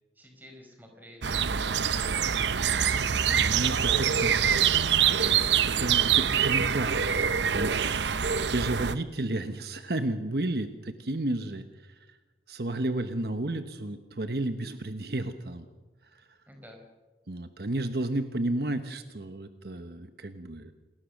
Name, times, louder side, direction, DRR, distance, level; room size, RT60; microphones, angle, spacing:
voice 1, 0.1-3.6 5.2-5.6 8.0-8.4 16.5-16.9, equal, 10° right, 3 dB, 5.1 m, -52 dB
sound 1, 1.2-9.0, right 8 dB, 80° right, 0.8 m, -25 dB
voice 2, 3.3-7.2 7.5-7.9 8.5-12.2 12.5-15.7 16.1-16.2 17.3-20.7, right 1 dB, 60° right, 8 dB, 1.2 m, -32 dB
28.0 x 20.5 x 6.6 m, 1.2 s
head